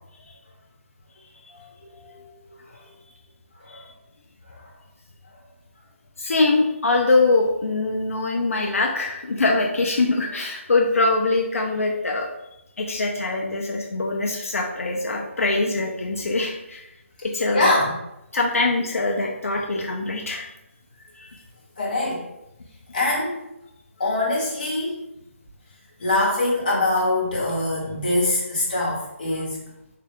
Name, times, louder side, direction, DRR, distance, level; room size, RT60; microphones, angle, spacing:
voice 1, 1.5-2.3 6.2-12.3 12.8-16.8 17.2-17.7 18.3-20.5 21.2-21.4, left 3 dB, 80° left, 0 dB, 0.5 m, -23 dB
voice 2, 17.5-17.9 21.8-22.3 22.9-23.4 24.0-25.0 26.0-29.6, left 2 dB, 35° left, -4 dB, 1.1 m, -23 dB
3.7 x 2.3 x 3.5 m, 0.87 s
hypercardioid pair, 180°, 7 cm